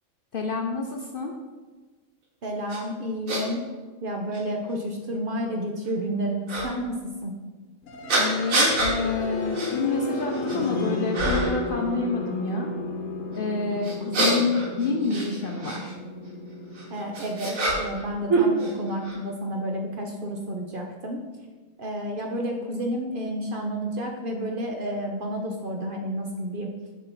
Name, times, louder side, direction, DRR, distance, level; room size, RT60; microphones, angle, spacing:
voice 1, 0.3-1.3 8.2-12.7 13.3-16.0, left 4 dB, 55° left, 1 dB, 0.6 m, -28 dB
voice 2, 2.4-3.7 4.0-7.3 16.9-21.2 21.8-26.7, equal, 50° right, 1 dB, 0.7 m, -30 dB
sound 1, 2.7-2.8 3.3-3.4 4.3-4.4 6.5-6.7 8.1-8.9 9.5-9.7 10.2-10.7 11.1-11.6 13.8-15.8 16.7-18.0 18.3-19.2, right 2 dB, 75° right, 1.7 m, -25 dB
sound 2, 7.8-19.7, left 3 dB, 75° left, 1.2 m, -33 dB
6.7 x 3.7 x 5.8 m, 1.3 s
omnidirectional pair, 1.4 m